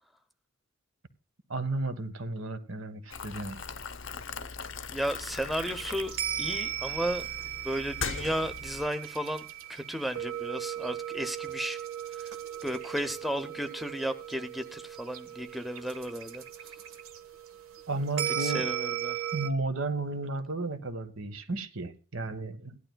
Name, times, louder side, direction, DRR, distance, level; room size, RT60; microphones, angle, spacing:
voice 1, 1.5-3.6 17.9-18.7 19.3-22.8, right 3 dB, 65° right, 1.4 m, -33 dB
Boiling, 3.1-8.9, left 5 dB, 60° left, 0.7 m, -40 dB
voice 2, 4.9-7.3 7.6-9.4 9.7-11.8 12.1-12.4 12.6-16.7 18.3-19.2, equal, ahead, 0.7 m, -34 dB
sound 1, 5.5-19.5, right 11 dB, 80° right, 1.3 m, -37 dB
17.0 x 11.5 x 2.3 m
head